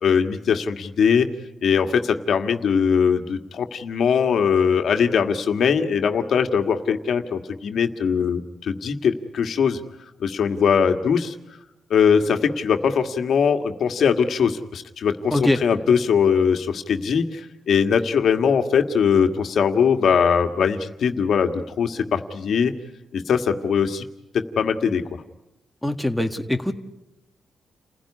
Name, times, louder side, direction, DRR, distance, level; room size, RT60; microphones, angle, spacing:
voice 1, 0.0-1.3 1.6-9.8 10.2-11.4 11.9-22.7 23.1-24.1 24.3-25.0, left 6 dB, 65° left, 6 dB, 1.7 m, -21 dB
voice 2, 15.3-15.6 25.8-26.7, left 1 dB, ahead, 4 dB, 1.7 m, -22 dB
29.5 x 16.0 x 9.9 m, 0.95 s
cardioid pair, 100°, 0 cm